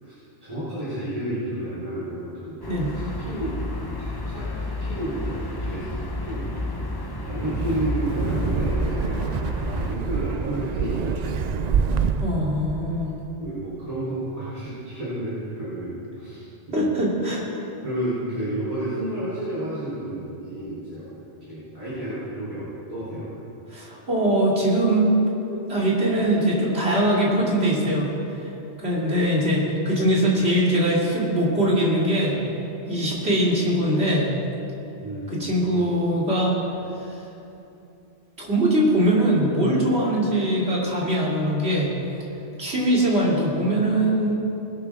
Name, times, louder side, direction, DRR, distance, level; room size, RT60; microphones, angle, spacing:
voice 1, 0.0-2.6 2.9-5.9 6.2-6.5 7.2-9.2 9.5-11.4 13.4-16.8 17.8-21.2 21.5-23.3 35.0-35.5, right 1 dB, 35° right, -12 dB, 3.9 m, -31 dB
sound 1, 2.6-10.0, left 2 dB, 20° left, 1.0 m, -31 dB
Wind, 7.4-12.5, right 6 dB, 50° right, 0.6 m, -26 dB
voice 2, 12.2-13.1 16.7-17.4 23.7-25.2 25.5-28.1 28.4-28.5 28.8-32.4 32.9-34.3 35.3-36.6 38.4-41.9 42.6-44.3, right 1 dB, 75° right, -5 dB, 3.2 m, -22 dB
20.0 x 12.0 x 3.6 m, 2.8 s
omnidirectional pair, 1.1 m